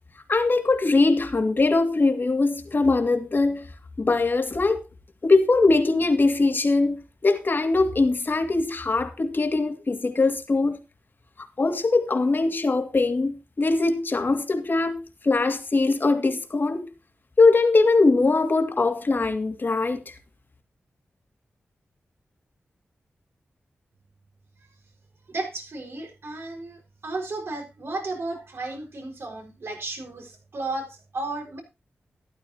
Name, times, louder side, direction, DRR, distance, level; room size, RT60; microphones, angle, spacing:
voice 1, 0.3-3.7 4.0-4.8 5.2-10.8 11.6-16.9 17.4-20.0, left 3 dB, 50° left, 2.4 m, -21 dB
voice 2, 25.3-31.6, right 2 dB, 70° right, 5.1 m, -34 dB
13.5 x 11.5 x 2.9 m
cardioid pair, 50°, 4 cm